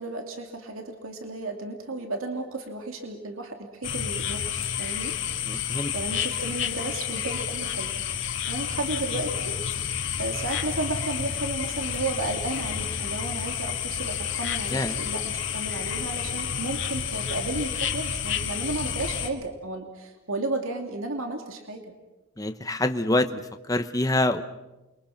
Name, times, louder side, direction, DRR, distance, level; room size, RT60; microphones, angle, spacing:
voice 1, 0.0-5.1 5.9-21.9, right 2 dB, 90° right, 4 dB, 2.6 m, -33 dB
sound 1, 3.8-19.3, left 8 dB, 65° left, 2.0 m, -30 dB
voice 2, 5.5-5.9 14.7-15.0 22.4-23.4 23.7-24.4, left 1 dB, 15° left, 8 dB, 0.9 m, -25 dB
28.5 x 23.5 x 5.9 m, 1.0 s
head